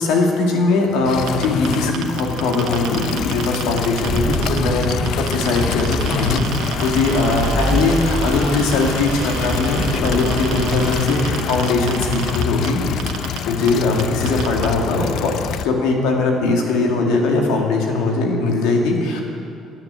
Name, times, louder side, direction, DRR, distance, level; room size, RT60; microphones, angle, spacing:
voice 1, 0.0-6.5 6.8-12.8 13.5-15.3 15.6-19.2, left 3 dB, 90° left, 1 dB, 2.1 m, -20 dB
sound 1, 1.0-15.7, left 8 dB, 70° left, 0.6 m, -26 dB
sound 2, 1.3-4.6 4.8-12.7 13.0-13.4 13.7-13.8 14.0-14.7, right 9 dB, 85° right, 1.3 m, -30 dB
Engine, 3.9-11.0, right 1 dB, 5° right, 0.5 m, -26 dB
10.5 x 9.4 x 9.5 m, 2.6 s
cardioid pair, 105°, 0 cm